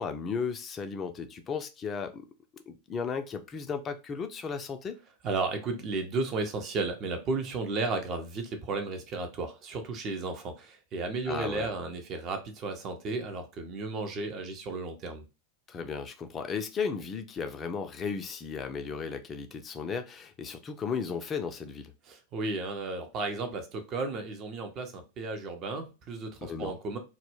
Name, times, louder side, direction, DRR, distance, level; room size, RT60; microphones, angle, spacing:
voice 1, 0.0-2.3 2.7-5.0 11.3-11.7 15.7-21.9 26.4-26.7, left 5 dB, 25° left, 0.4 m, -35 dB
voice 2, 5.2-15.2 22.1-27.0, right 3 dB, 35° right, 0.5 m, -34 dB
2.1 x 2.0 x 3.0 m
figure-of-eight pair, 90°, 0 cm